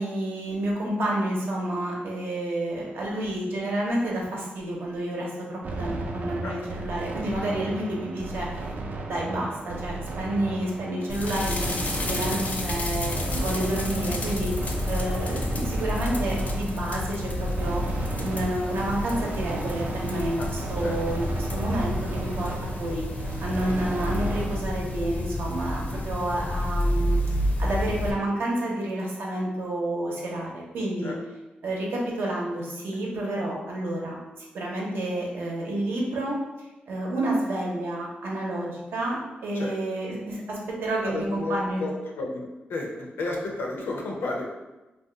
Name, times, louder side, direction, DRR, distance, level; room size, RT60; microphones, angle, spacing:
voice 1, 0.0-17.8 18.2-22.5 22.8-23.0 23.4-27.2 27.6-31.1 31.6-36.4 36.9-41.8, right 1 dB, 85° right, -3 dB, 0.7 m, -29 dB
sound 1, 5.6-24.6, right 2 dB, 50° right, 0.4 m, -34 dB
sound 2, 11.1-28.1, left 1 dB, 45° left, 0.4 m, -30 dB
voice 2, 41.0-44.4, left 2 dB, 90° left, 0 dB, 0.6 m, -32 dB
2.5 x 2.2 x 3.7 m, 1.1 s
wide cardioid pair, 135°, 4 cm